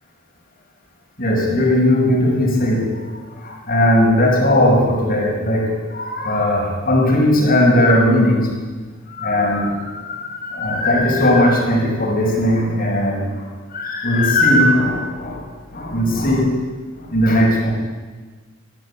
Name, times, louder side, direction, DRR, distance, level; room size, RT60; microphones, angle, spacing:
voice 1, 1.2-3.1 3.4-8.5 9.1-13.4 13.7-15.4 15.7-16.5 17.1-17.7, left 1 dB, 45° left, 1 dB, 5.8 m, -17 dB
22.0 x 14.0 x 9.8 m, 1.4 s
head